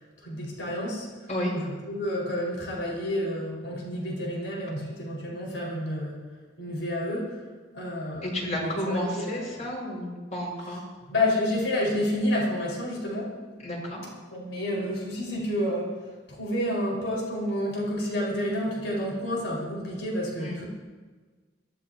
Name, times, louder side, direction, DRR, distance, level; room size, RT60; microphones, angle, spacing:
voice 1, 0.2-1.1 1.5-6.2 6.6-7.4 7.7-9.6 11.1-13.4 14.3-16.0 16.3-20.7, left 1 dB, 80° left, -3 dB, 5.4 m, -29 dB
voice 2, 8.2-10.8 13.6-14.0 20.4-20.6, left 1 dB, 40° left, -3 dB, 5.8 m, -31 dB
23.0 x 16.0 x 3.0 m, 1.4 s
head